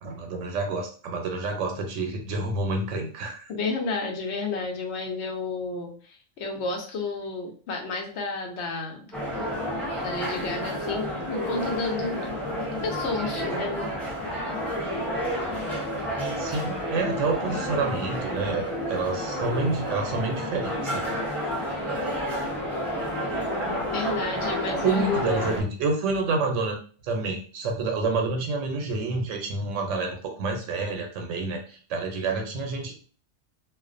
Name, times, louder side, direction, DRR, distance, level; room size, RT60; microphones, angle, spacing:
voice 1, 0.0-3.5 16.4-21.0 24.8-26.8 27.0-32.9, right 3 dB, 90° right, 3 dB, 0.9 m, -28 dB
voice 2, 3.5-9.1 10.0-12.2 12.8-13.9 23.9-25.5, left 3 dB, 70° left, 1 dB, 0.9 m, -31 dB
sound 1, 9.1-25.6, equal, ahead, 0.6 m, -30 dB
2.4 x 2.1 x 2.4 m, 0.40 s
omnidirectional pair, 1.2 m